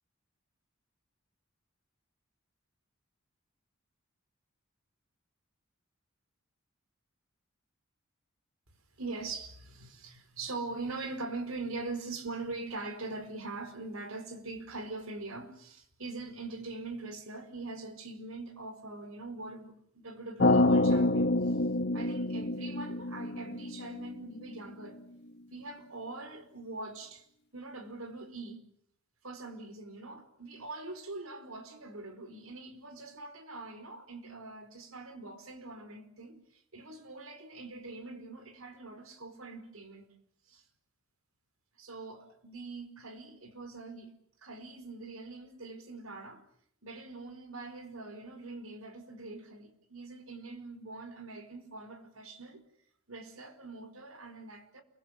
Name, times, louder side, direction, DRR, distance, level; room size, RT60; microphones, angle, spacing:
voice 1, 9.0-21.6 21.9-25.0 25.5-27.3 27.5-28.6 29.2-40.1 40.5-40.6 41.8-44.1 44.4-46.4 46.8-52.6 53.1-54.8, right 3 dB, 90° right, 4.9 m, -43 dB
sound 1, 20.4-24.5, left 2 dB, 55° left, 1.3 m, -27 dB
28.5 x 24.0 x 7.6 m
head